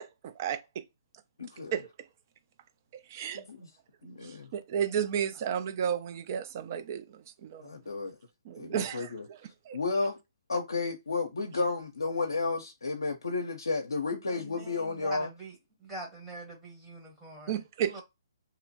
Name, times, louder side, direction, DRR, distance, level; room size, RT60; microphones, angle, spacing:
voice 1, 0.2-0.8 1.7-1.9 2.9-3.4 4.2-7.7 8.5-9.4 9.7-9.8 17.5-18.0, right 8 dB, 45° right, 0.4 m, -33 dB
voice 2, 1.4-1.7 3.3-3.7 4.0-4.5 7.6-8.2 8.6-9.3 9.7-10.2 10.5-15.3, left 3 dB, 85° left, 0.5 m, -32 dB
voice 3, 14.3-15.5 15.8-18.0, right 1 dB, 10° right, 1.0 m, -44 dB
2.8 x 2.1 x 2.7 m
figure-of-eight pair, 135°, 2 cm